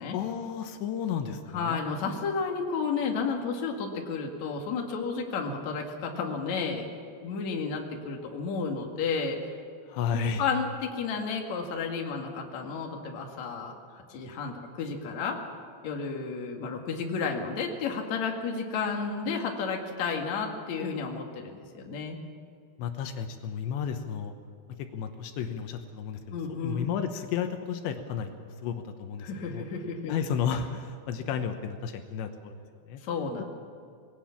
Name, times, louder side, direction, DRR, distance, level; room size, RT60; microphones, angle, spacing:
voice 1, 0.1-1.8 9.9-10.4 22.8-24.3 24.8-26.4 26.6-29.6 30.1-33.0 33.4-33.5, left 7 dB, 80° left, 6 dB, 3.3 m, -33 dB
voice 2, 1.5-6.8 7.2-9.4 9.9-15.4 15.8-22.2 26.3-26.9 29.2-30.2 33.0-33.4, left 5 dB, 50° left, 1 dB, 2.8 m, -32 dB
20.5 x 17.5 x 7.2 m, 2.3 s
omnidirectional pair, 5.1 m